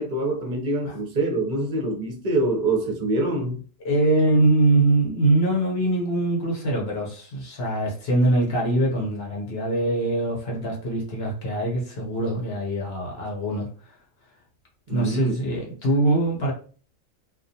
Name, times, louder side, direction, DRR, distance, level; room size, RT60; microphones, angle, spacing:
voice 1, 0.0-3.6 14.9-15.3, right 2 dB, 45° right, 0.7 m, -25 dB
voice 2, 3.8-13.7 14.9-16.5, right 2 dB, 55° left, 1.0 m, -23 dB
2.4 x 2.3 x 2.7 m
omnidirectional pair, 1.3 m